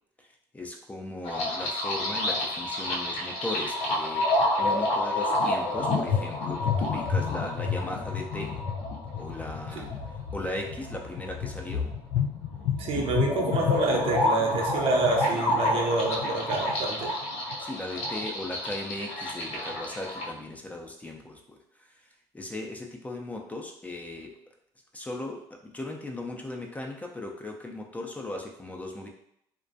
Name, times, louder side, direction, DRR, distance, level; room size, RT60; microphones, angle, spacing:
voice 1, 0.5-8.6 9.2-9.9 10.3-11.9 17.6-21.6 22.3-24.3 24.9-29.1, left 1 dB, 15° left, 1 dB, 0.4 m, -37 dB
sound 1, 1.2-20.3, left 2 dB, 75° left, 0.5 m, -29 dB
voice 2, 12.8-17.1, right 3 dB, 60° right, 2 dB, 0.5 m, -28 dB
2.3 x 2.1 x 2.6 m, 0.74 s
supercardioid pair, 85°, 11 cm